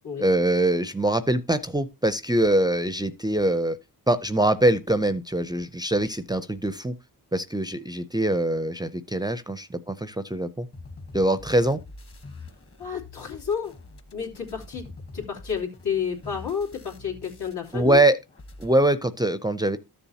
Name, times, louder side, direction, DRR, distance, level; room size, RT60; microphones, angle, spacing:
voice 1, 0.2-3.8 4.1-6.9 7.3-10.7 11.1-11.8 17.7-18.2 18.6-19.8, right 1 dB, 10° right, 0.4 m, -23 dB
sound 1, 10.7-18.0 18.3-18.7, left 3 dB, 35° left, 1.2 m, -45 dB
voice 2, 12.8-13.8 14.1-18.0, left 7 dB, 80° left, 2.9 m, -31 dB
13.5 x 7.0 x 2.8 m
wide cardioid pair, 140°, 39 cm